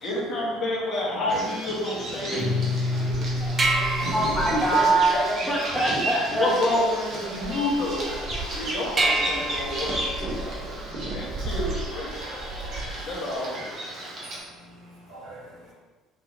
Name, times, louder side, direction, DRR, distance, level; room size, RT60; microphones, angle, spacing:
voice 1, 0.0-3.4 4.7-5.8 6.3-8.1 8.5-10.7 11.1-12.1 13.0-13.8, left 1 dB, 55° left, -5 dB, 1.3 m, -29 dB
Bird vocalization bird call bird song, 1.3-14.4, right 1 dB, 55° right, 1.0 m, -34 dB
Guitar, 2.3-4.9, left 2 dB, 35° left, 1.3 m, -28 dB
voice 2, 3.0-5.2 5.5-6.5 9.2-9.4, right 2 dB, 5° left, -5 dB, 1.1 m, -25 dB
sound 1, 3.1-13.1, right 2 dB, 30° right, 0.5 m, -31 dB
voice 3, 4.0-4.7 7.3-7.6 8.1-8.9 10.5-10.6 11.4-11.6 12.2-12.7 15.1-15.4, equal, 80° right, -10 dB, 1.1 m, -39 dB
4.6 x 2.8 x 2.7 m, 1.3 s
hypercardioid pair, 60°, 0 cm